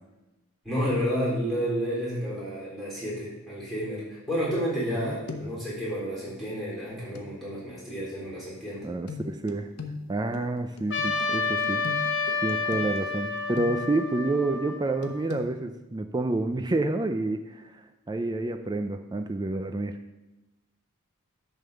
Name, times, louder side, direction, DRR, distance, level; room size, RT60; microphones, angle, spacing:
voice 1, 0.6-8.8, equal, ahead, -7 dB, 3.6 m, -30 dB
sound 1, 4.5-5.0 5.3-5.7 7.2-7.3 9.1-14.1 15.0-15.5, left 4 dB, 85° left, 1.0 m, -40 dB
voice 2, 8.8-9.7 10.1-11.8 12.4-17.7 18.1-19.9, right 2 dB, 20° right, 7 dB, 0.4 m, -29 dB
Trumpet, 10.9-15.4, left 4 dB, 55° left, 0.8 m, -30 dB
10.5 x 3.7 x 6.8 m, 1.0 s
head